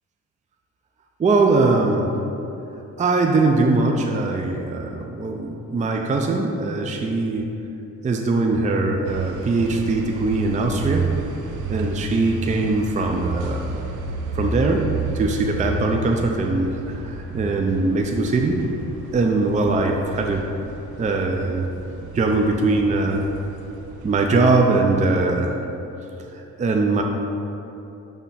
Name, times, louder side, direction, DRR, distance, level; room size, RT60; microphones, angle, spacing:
voice 1, 1.2-2.1 3.0-7.5 8.0-11.1 11.7-13.8 14.3-14.9 15.1-18.6 19.1-20.5 21.0-21.7 22.1-23.2 24.0-25.6 26.3-27.0, right 3 dB, 25° right, 2 dB, 0.5 m, -21 dB
sound 1, 9.1-24.3, right 3 dB, 85° right, 0.6 m, -31 dB
6.1 x 3.5 x 5.7 m, 2.9 s
cardioid pair, 90°, 30 cm